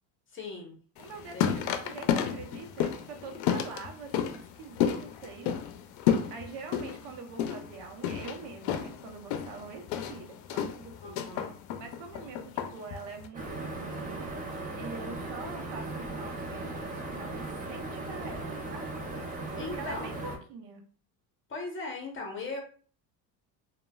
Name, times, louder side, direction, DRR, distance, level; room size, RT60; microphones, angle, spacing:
voice 1, 0.3-0.8 1.3-1.6 11.0-11.5 19.6-20.2 21.5-22.6, left 3 dB, 25° left, 1 dB, 0.9 m, -38 dB
sound 1, 1.0-13.3, left 8 dB, 80° left, 0.6 m, -32 dB
voice 2, 1.0-5.6 6.3-11.4 11.8-18.9 19.6-20.9, right 4 dB, 65° right, 3 dB, 0.8 m, -44 dB
sound 2, 13.3-20.4, right 2 dB, 20° right, 0.6 m, -37 dB
3.1 x 2.3 x 2.3 m, 0.43 s
cardioid pair, 110°, 45 cm